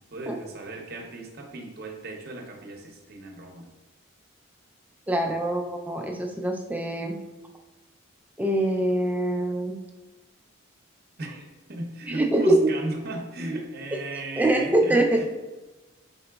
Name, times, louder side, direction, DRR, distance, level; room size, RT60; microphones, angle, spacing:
voice 1, 0.1-3.7 5.2-5.5 11.2-15.3, right 2 dB, 50° right, 1 dB, 0.7 m, -36 dB
voice 2, 5.1-7.2 8.4-9.8 12.2-12.7 14.4-15.2, right 1 dB, 10° right, 2 dB, 0.3 m, -24 dB
4.8 x 3.8 x 2.2 m, 1.1 s
head